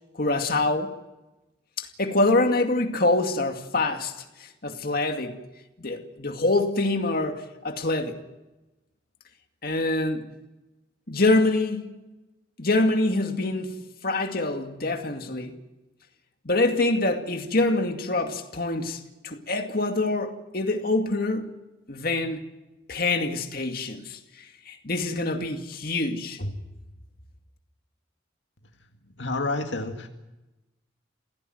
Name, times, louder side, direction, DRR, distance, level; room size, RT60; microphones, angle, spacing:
voice 1, 0.2-0.9 1.8-4.1 4.4-5.4 5.8-8.1 9.6-10.3 11.1-12.0 12.6-13.7 14.0-15.5 16.5-21.5 21.9-22.4 22.9-26.5, left 2 dB, 50° left, 2.3 m, -25 dB
voice 2, 29.2-30.1, left 2 dB, 70° left, 2.1 m, -29 dB
27.5 x 16.5 x 7.9 m
head